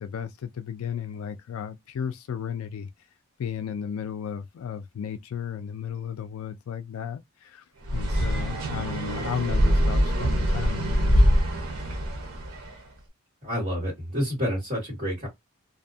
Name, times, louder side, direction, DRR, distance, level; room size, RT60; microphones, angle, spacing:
voice 1, 0.0-2.9 3.4-7.6 7.9-11.4, left 8 dB, 80° left, 0.3 m, -34 dB
sound 1, 7.9-12.7, equal, 85° right, 0.9 m, -23 dB
voice 2, 13.4-15.3, equal, 40° right, 1.6 m, -29 dB
2.6 x 2.1 x 2.6 m
head